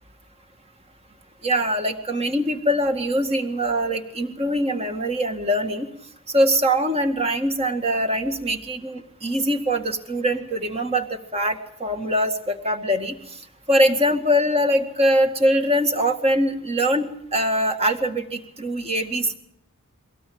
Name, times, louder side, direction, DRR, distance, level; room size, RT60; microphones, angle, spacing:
voice 1, 1.4-5.9 6.3-13.4 13.7-19.4, equal, 25° right, 6 dB, 2.0 m, -23 dB
23.0 x 17.5 x 8.8 m, 0.69 s
head